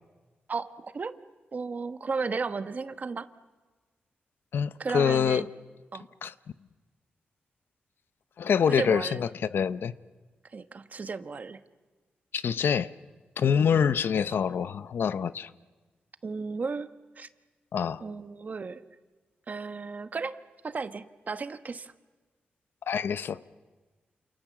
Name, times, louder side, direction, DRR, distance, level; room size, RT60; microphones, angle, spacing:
voice 1, 0.5-1.2 1.5-3.3 4.8-5.5 5.9-6.0 8.7-9.3 10.5-11.6 16.2-16.9 17.2-17.3 18.0-18.8 19.5-20.4 20.6-21.9, right 4 dB, 45° right, 1.2 m, -34 dB
voice 2, 4.5-5.4 6.2-6.3 8.4-9.9 12.3-12.9 13.4-15.5 17.7-18.0 22.9-23.4, left 7 dB, 75° left, 0.8 m, -26 dB
29.0 x 28.0 x 7.3 m
cardioid pair, 95°, 4 cm